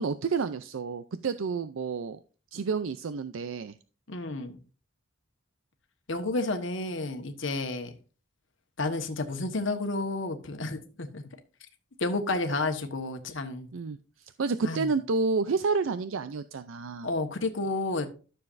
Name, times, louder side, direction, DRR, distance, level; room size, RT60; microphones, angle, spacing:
voice 1, 0.0-2.2 2.5-3.7 13.7-17.1, right 4 dB, 80° right, 0.5 m, -30 dB
voice 2, 4.1-4.6 6.1-7.9 8.8-11.2 12.0-13.7 14.6-14.9 17.0-18.1, left 2 dB, 70° left, 1.3 m, -31 dB
13.0 x 6.9 x 2.6 m
head